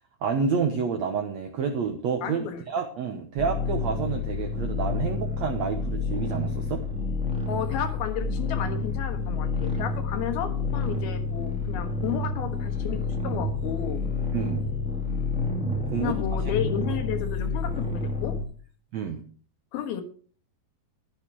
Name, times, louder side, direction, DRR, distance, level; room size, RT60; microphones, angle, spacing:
voice 1, 0.2-6.8 14.3-14.6 15.8-16.2 16.4-16.5 18.9-19.2, right 6 dB, 75° right, 5 dB, 1.6 m, -29 dB
voice 2, 2.2-2.6 7.5-14.0 16.0-18.4 19.7-20.0, left 9 dB, 75° left, 7 dB, 3.2 m, -33 dB
sound 1, 3.4-18.4, left 3 dB, ahead, 1.6 m, -29 dB
12.0 x 10.5 x 4.6 m, 0.42 s
omnidirectional pair, 4.6 m